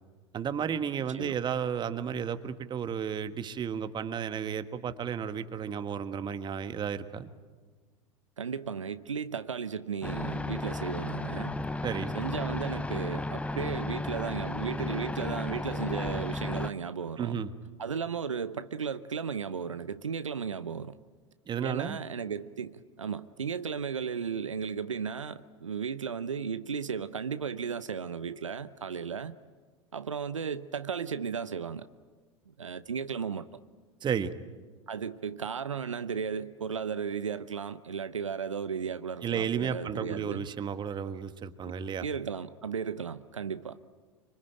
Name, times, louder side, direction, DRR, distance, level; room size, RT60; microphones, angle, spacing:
voice 1, 0.3-7.3 11.8-12.2 17.2-17.5 21.5-22.0 34.0-34.3 39.2-42.0, right 7 dB, 30° right, 1.5 m, -33 dB
voice 2, 8.4-11.6 12.1-17.4 17.8-21.0 21.6-29.3 29.9-31.9 32.6-33.5 34.9-40.5 41.7-43.8, right 6 dB, 85° right, 0.8 m, -35 dB
sound 1, 10.0-16.7, left 2 dB, 10° left, 0.8 m, -34 dB
25.5 x 25.0 x 9.0 m
figure-of-eight pair, 85°, 16 cm